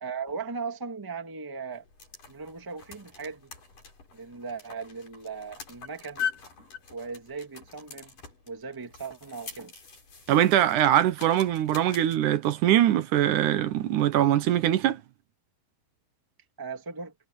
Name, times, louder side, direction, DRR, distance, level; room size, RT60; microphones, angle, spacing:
voice 1, 0.0-1.8 2.3-3.5 4.1-6.2 6.9-8.2 8.5-9.7 16.6-17.1, right 5 dB, 10° right, 1.2 m, -38 dB
sound 1, 1.7-12.2, left 8 dB, 75° left, 9.2 m, -42 dB
voice 2, 10.3-15.0, right 12 dB, 75° right, 2.4 m, -22 dB
omnidirectional pair, 3.7 m